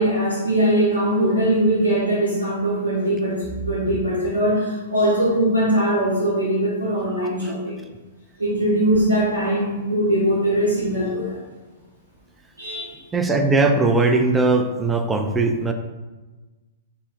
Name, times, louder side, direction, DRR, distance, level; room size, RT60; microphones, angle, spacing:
voice 1, 0.0-7.8 8.4-11.4 12.6-12.9, right 1 dB, 80° right, -8 dB, 0.8 m, -21 dB
voice 2, 7.1-7.5 8.6-8.7 13.1-15.7, right 3 dB, 10° right, 5 dB, 0.3 m, -20 dB
3.0 x 2.0 x 4.0 m, 1.2 s
figure-of-eight pair, 110°, 0 cm